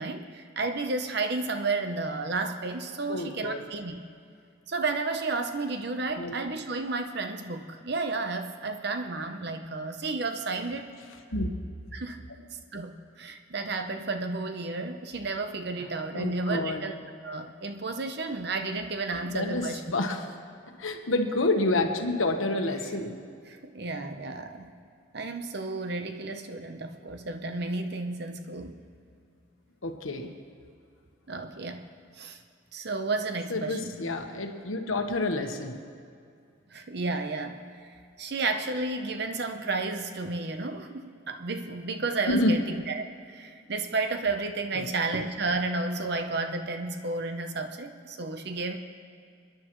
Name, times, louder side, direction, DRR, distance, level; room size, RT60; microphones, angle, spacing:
voice 1, 0.0-4.0 4.7-10.9 11.9-12.2 12.7-16.9 17.2-19.8 23.5-24.7 25.1-28.8 31.3-31.9 32.2-32.4 32.7-34.0 36.7-48.8, right 3 dB, 50° right, 7 dB, 0.8 m, -32 dB
voice 2, 3.1-3.7 6.2-6.4 11.3-11.5 15.8-16.8 19.1-20.2 20.8-23.2 29.8-30.3 33.5-35.8 42.3-42.5 44.7-44.9, left 2 dB, 80° left, 4 dB, 1.2 m, -29 dB
29.0 x 10.5 x 3.1 m, 2.4 s
head